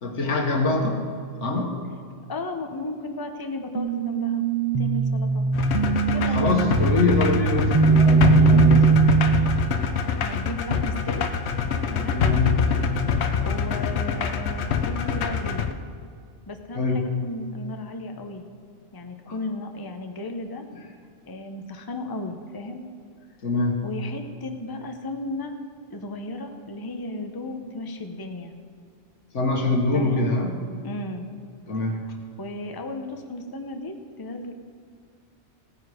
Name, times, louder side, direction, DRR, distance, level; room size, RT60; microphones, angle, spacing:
voice 1, 0.0-1.0 1.4-1.8 6.1-9.1 9.9-10.0 12.1-12.7 16.7-17.2 19.3-19.4 23.4-23.8 29.3-30.6 31.7-32.0, left 3 dB, 85° left, 2 dB, 1.9 m, -24 dB
voice 2, 2.3-4.4 4.8-5.5 6.1-6.7 10.2-11.2 11.9-12.2 13.4-15.7 16.5-18.4 18.9-20.7 21.3-22.8 23.8-25.6 25.9-28.5 29.9-30.2 30.8-31.3 32.4-34.5, left 2 dB, 20° left, 5 dB, 0.8 m, -34 dB
sound 1, 3.8-9.7, right 5 dB, 40° right, 0.5 m, -20 dB
sound 2, 5.5-15.7, left 6 dB, 70° left, 1.0 m, -25 dB
17.0 x 9.4 x 4.9 m, 2.2 s
omnidirectional pair, 1.2 m